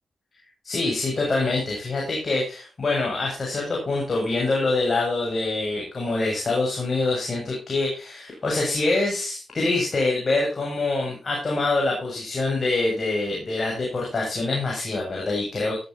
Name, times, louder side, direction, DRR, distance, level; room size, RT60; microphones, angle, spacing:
voice 1, 0.6-15.8, left 2 dB, 45° left, -2 dB, 7.8 m, -25 dB
14.5 x 14.5 x 3.0 m, 0.35 s
cardioid pair, 55°, 0 cm